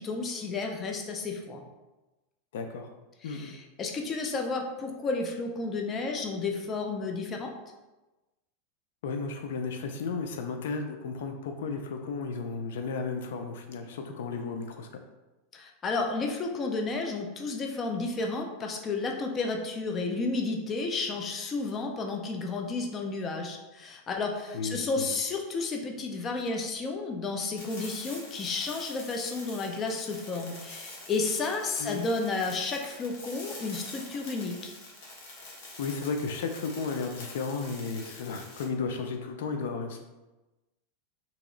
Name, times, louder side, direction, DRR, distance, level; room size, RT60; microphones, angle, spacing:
voice 1, 0.0-1.6 3.2-7.5 15.5-34.7, left 3 dB, 25° left, 2 dB, 0.5 m, -32 dB
voice 2, 2.5-2.9 3.2-3.5 9.0-14.9 24.5-25.1 31.8-32.0 35.8-40.0, left 4 dB, 80° left, 5 dB, 0.4 m, -34 dB
sound 1, 27.6-38.6, left 2 dB, 65° left, 1.1 m, -46 dB
2.9 x 2.9 x 3.8 m, 1.1 s
supercardioid pair, 140°, 0 cm